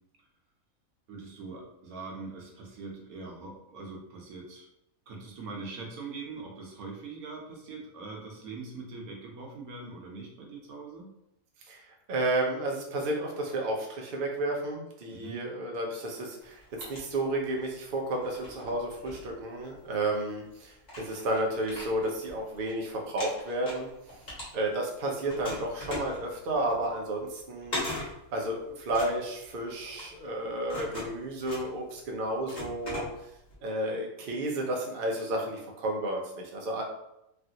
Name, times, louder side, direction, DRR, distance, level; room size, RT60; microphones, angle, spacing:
voice 1, 1.1-4.7 5.1-11.1 15.1-15.4, right 3 dB, 85° right, -1 dB, 1.2 m, -42 dB
voice 2, 11.7-23.9 24.5-27.8 28.3-33.1 33.6-36.8, right 1 dB, 55° right, 0 dB, 0.6 m, -32 dB
sound 1, 16.4-17.7 18.2-19.9 20.5-20.6 20.8-22.7 23.0-24.9 25.3-33.5, left 1 dB, 35° left, 1.2 m, -40 dB
3.2 x 2.4 x 2.7 m, 0.84 s
omnidirectional pair, 1.5 m